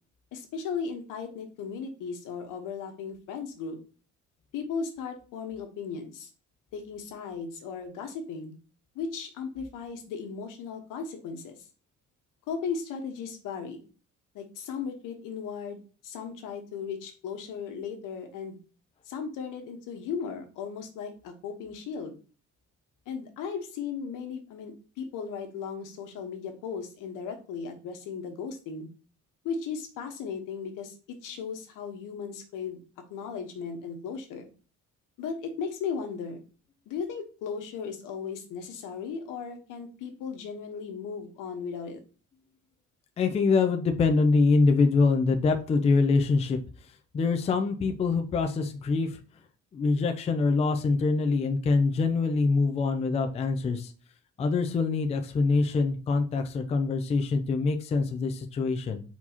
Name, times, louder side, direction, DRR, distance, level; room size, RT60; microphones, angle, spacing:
voice 1, 0.3-3.8 4.5-6.3 6.7-8.5 8.9-11.6 12.5-13.8 14.3-18.6 19.0-22.1 23.1-28.9 29.4-32.8 33.1-34.5 35.2-36.4 36.9-42.0, left 6 dB, 85° left, 5 dB, 1.2 m, -36 dB
voice 2, 43.2-46.6 47.1-49.2 49.7-53.9 54.4-59.0, left 4 dB, 20° left, 6 dB, 0.4 m, -24 dB
4.5 x 4.2 x 2.8 m, 0.36 s
cardioid pair, 170°, 31 cm